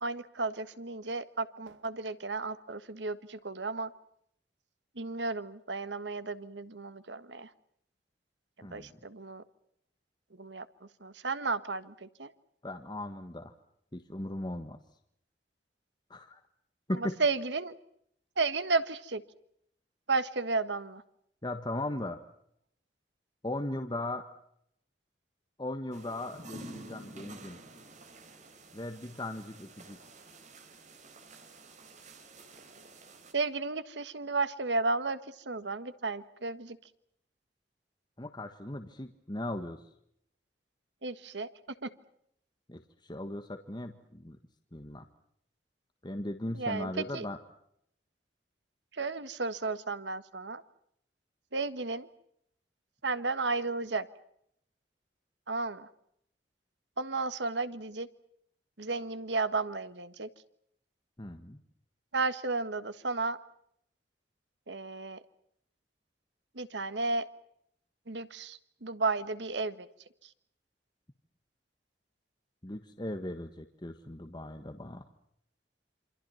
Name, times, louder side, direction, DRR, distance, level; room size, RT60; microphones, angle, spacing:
voice 1, 0.0-3.9 5.0-7.5 8.6-9.4 10.4-12.3 16.9-17.8 18.4-19.2 20.1-21.0 33.3-36.8 41.0-41.5 41.8-41.9 46.5-47.3 48.9-50.6 51.5-52.1 53.0-54.1 55.5-55.9 57.0-58.1 58.8-60.3 62.1-63.4 64.7-65.2 66.6-67.3 68.1-69.9 70.2-70.3, right 3 dB, 80° right, 12 dB, 1.6 m, -33 dB
voice 2, 8.6-8.9 12.6-13.5 13.9-14.8 16.1-16.4 16.9-17.2 21.4-22.2 23.4-24.2 25.6-27.6 28.7-30.0 38.2-39.8 42.7-44.4 44.7-45.1 46.0-47.4 61.2-61.6 72.6-75.0, left 1 dB, 25° left, 6 dB, 1.4 m, -38 dB
sound 1, 25.9-33.3, right 2 dB, 45° right, 3.7 m, -50 dB
28.0 x 26.0 x 5.7 m, 0.73 s
head